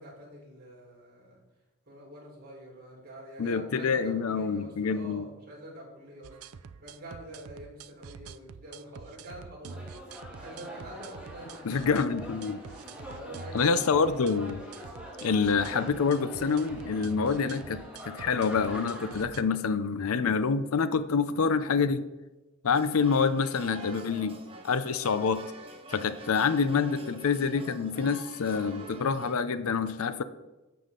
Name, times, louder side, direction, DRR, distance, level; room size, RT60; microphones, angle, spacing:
voice 1, 0.0-1.4 1.9-9.8 10.3-11.8 12.8-14.3, right 1 dB, 45° right, -3 dB, 3.8 m, -46 dB
voice 2, 3.4-5.2 11.6-12.6 13.5-14.6 15.2-17.8 18.0-22.0 22.6-24.4 24.6-25.4 25.9-30.2, left 5 dB, 65° left, 13 dB, 0.5 m, -27 dB
sound 1, 6.2-19.4, right 5 dB, 75° right, 0.5 m, -46 dB
sound 2, 9.7-19.2, equal, 5° right, 2.3 m, -44 dB
sound 3, 22.7-29.4, right 2 dB, 25° right, 1.4 m, -46 dB
12.0 x 7.8 x 3.8 m, 1.1 s
head